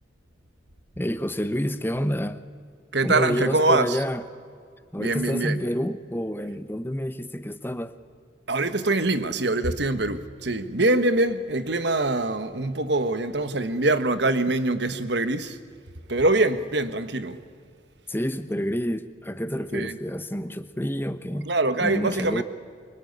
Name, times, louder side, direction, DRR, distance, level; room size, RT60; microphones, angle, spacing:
voice 1, 1.0-2.4 3.0-4.2 4.9-7.9 18.1-21.5 21.8-22.4, equal, 10° left, 1.0 m, -28 dB
voice 2, 2.9-4.0 5.0-5.6 8.5-15.6 16.1-17.4 19.7-20.0 21.4-22.4, right 2 dB, 60° right, 1.5 m, -24 dB
25.5 x 24.0 x 9.7 m
head